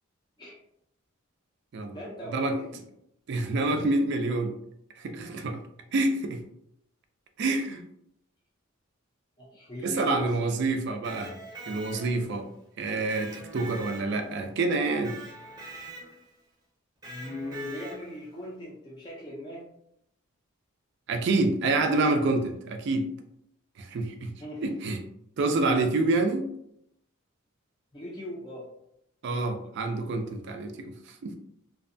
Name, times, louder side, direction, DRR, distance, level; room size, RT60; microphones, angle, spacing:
voice 1, 1.9-2.7 7.4-7.5 9.4-10.5 10.9-11.3 17.0-19.6 24.4-24.6 27.9-28.7, left 1 dB, 20° left, -5 dB, 0.4 m, -39 dB
voice 2, 3.3-4.5 5.0-5.6 5.9-6.4 7.4-7.8 9.8-11.3 11.7-12.5 12.8-15.1 21.1-23.1 23.8-24.3 24.6-25.0 25.4-26.5 29.2-30.9 31.2-31.4, right 2 dB, 55° right, 6 dB, 0.3 m, -27 dB
Electric guitar, 10.9-12.4 13.1-14.5 15.0-16.3 17.0-18.3, right 2 dB, 20° right, 0.7 m, -43 dB
2.5 x 2.1 x 2.5 m, 0.76 s
head